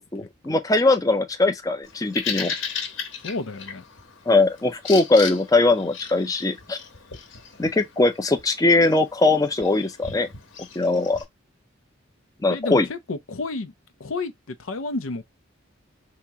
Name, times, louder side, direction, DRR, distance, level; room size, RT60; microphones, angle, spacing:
voice 1, 0.0-2.5 4.3-6.8 7.6-10.3 10.8-11.2 12.4-12.9, left 2 dB, 15° left, 0.5 m, -20 dB
Bird vocalization bird call bird song, 1.8-11.2, left 6 dB, 70° left, 1.0 m, -36 dB
voice 2, 3.2-3.8 12.5-13.7 14.0-15.2, left 3 dB, 90° left, 0.6 m, -31 dB
2.9 x 2.9 x 3.5 m
head